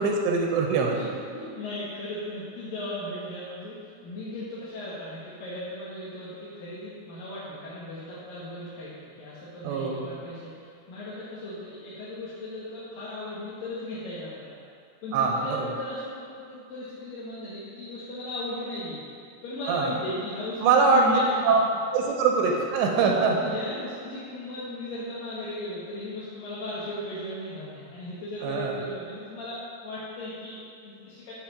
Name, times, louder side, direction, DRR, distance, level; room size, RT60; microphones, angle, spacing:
voice 1, 0.0-1.0 9.6-10.1 15.1-15.4 19.7-19.9 20.6-21.0 21.5-21.6 21.9-23.4 28.4-28.7, right 5 dB, 80° right, 1 dB, 2.8 m, -22 dB
voice 2, 0.9-14.6 15.0-19.0 19.4-21.6 22.4-22.5 22.9-31.3, left 1 dB, 65° left, -9 dB, 2.4 m, -37 dB
7.5 x 5.6 x 5.9 m, 2.3 s
omnidirectional pair, 5.3 m